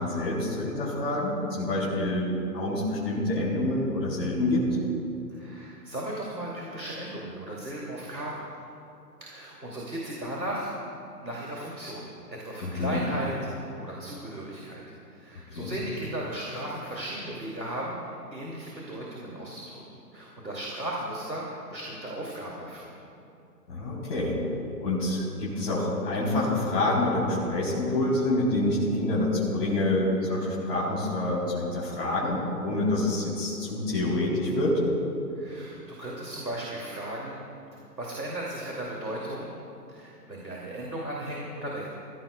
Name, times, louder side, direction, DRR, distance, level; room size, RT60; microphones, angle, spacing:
voice 1, 0.0-2.3 2.5-4.6 12.6-13.0 15.5-15.8 23.7-24.4 24.8-34.8, left 2 dB, 35° left, -8 dB, 3.6 m, -27 dB
voice 2, 5.3-8.5 9.2-10.7 11.2-14.8 15.1-19.8 20.1-22.9 35.3-37.4 38.0-39.5 39.9-41.9, right 1 dB, 90° right, -4 dB, 2.8 m, -36 dB
24.5 x 15.5 x 2.3 m, 2.7 s
figure-of-eight pair, 135°, 49 cm